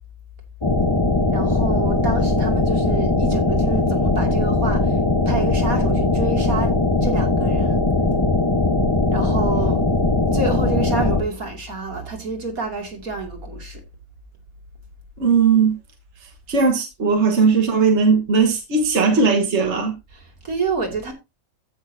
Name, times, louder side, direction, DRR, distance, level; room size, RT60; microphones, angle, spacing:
sound 1, 0.6-11.2, left 2 dB, 20° left, 1.1 m, -19 dB
voice 1, 1.3-6.7 7.0-7.8 9.1-9.8 10.3-13.8 20.1-21.1, right 3 dB, 85° right, 3.0 m, -28 dB
voice 2, 15.2-15.7 16.5-19.9, right 5 dB, 55° right, 1.7 m, -18 dB
15.5 x 6.4 x 2.7 m
omnidirectional pair, 1.5 m